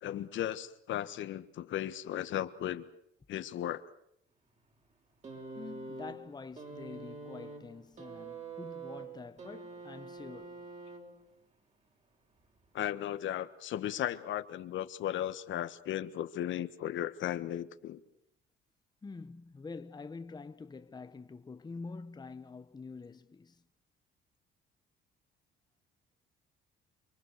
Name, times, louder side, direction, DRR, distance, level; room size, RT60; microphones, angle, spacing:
voice 1, 0.0-2.9 3.3-3.8 12.7-18.0, left 11 dB, 65° left, 1.4 m, -36 dB
sound 1, 5.2-11.4 12.5-12.6, right 3 dB, 35° right, 5.7 m, -45 dB
voice 2, 5.5-10.6 19.0-23.6, left 4 dB, 20° left, 1.2 m, -46 dB
29.0 x 23.0 x 6.7 m
cardioid pair, 115°, 21 cm